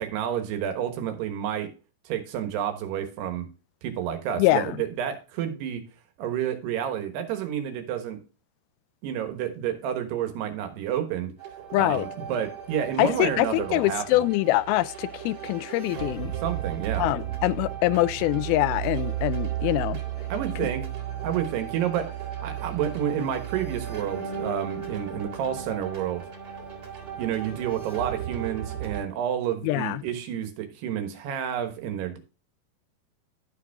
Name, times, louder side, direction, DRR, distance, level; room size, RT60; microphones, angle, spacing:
voice 1, 0.0-1.7 2.1-3.5 3.8-5.8 6.2-8.2 9.0-11.3 11.7-14.2 16.4-17.1 20.3-20.9 21.2-26.3 27.2-32.2, right 9 dB, 85° right, 3.4 m, -30 dB
voice 2, 4.4-4.8 11.7-12.1 13.0-16.3 17.0-20.0 20.6-20.7 29.6-30.0, left 17 dB, 80° left, 2.3 m, -24 dB
sound 1, 11.4-29.0, right 10 dB, 40° right, 3.1 m, -35 dB
12.5 x 5.2 x 3.5 m
omnidirectional pair, 4.6 m